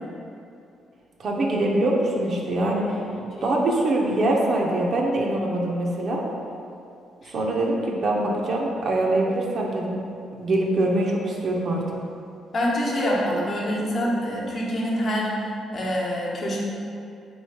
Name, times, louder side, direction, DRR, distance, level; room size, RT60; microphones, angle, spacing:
voice 1, 1.2-3.0 3.4-6.2 7.3-10.0 10.4-12.0, right 1 dB, 55° right, -1 dB, 0.6 m, -23 dB
voice 2, 12.5-16.6, equal, 50° left, -4 dB, 0.9 m, -26 dB
3.1 x 3.1 x 4.3 m, 2.6 s
cardioid pair, 90°, 0 cm